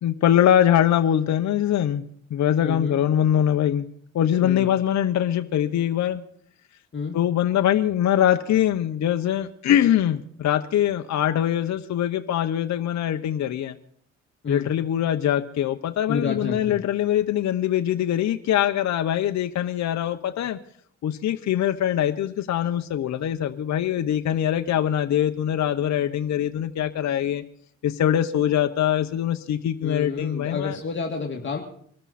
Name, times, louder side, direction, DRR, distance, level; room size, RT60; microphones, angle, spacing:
voice 1, 0.0-2.0 2.3-3.9 4.1-6.2 7.1-13.8 14.5-20.6 21.0-27.4 27.8-30.8, left 10 dB, 65° left, 7 dB, 1.0 m, -23 dB
voice 2, 2.6-3.0 4.4-4.6 6.9-7.2 14.4-14.7 16.1-16.8 29.8-31.6, left 5 dB, 40° left, 1 dB, 2.3 m, -29 dB
23.5 x 13.5 x 4.2 m, 0.64 s
cardioid pair, 90°, 30 cm